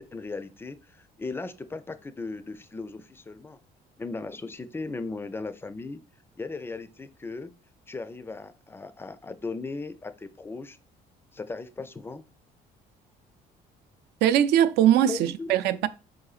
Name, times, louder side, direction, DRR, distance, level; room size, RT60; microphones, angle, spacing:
voice 1, 0.0-3.6 4.0-6.0 6.4-7.5 7.9-10.8 11.3-12.3 15.1-15.5, left 3 dB, 15° left, 0.3 m, -37 dB
voice 2, 14.2-15.9, right 11 dB, 80° right, 0.4 m, -21 dB
4.8 x 3.8 x 2.4 m
cardioid pair, 110°, 17 cm